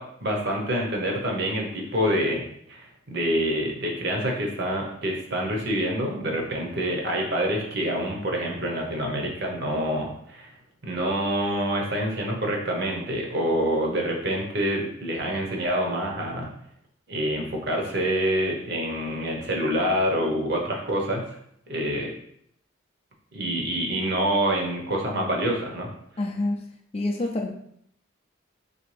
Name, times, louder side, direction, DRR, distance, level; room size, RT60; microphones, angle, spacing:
voice 1, 0.0-2.4 2.7-10.5 10.8-16.5 17.1-21.2 21.7-22.1 23.3-25.9, equal, 50° right, 0 dB, 0.9 m, -26 dB
voice 2, 26.2-26.7 26.9-27.5, left 2 dB, 30° left, 2 dB, 0.4 m, -27 dB
4.0 x 3.3 x 3.3 m, 0.70 s
head